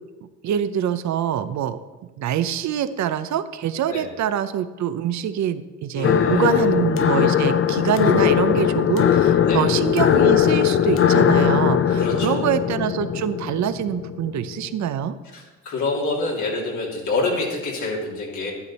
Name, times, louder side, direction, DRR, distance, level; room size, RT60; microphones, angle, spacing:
voice 1, 0.4-1.8 2.2-15.2, right 9 dB, 65° right, 12 dB, 0.7 m, -25 dB
voice 2, 6.0-6.8 9.4-9.6 12.0-12.5 15.3-18.5, left 3 dB, 75° left, -3 dB, 2.8 m, -27 dB
sound 1, 6.0-14.9, left 9 dB, 45° left, 0.6 m, -19 dB
11.0 x 9.7 x 4.2 m, 1.2 s
cardioid pair, 90°, 30 cm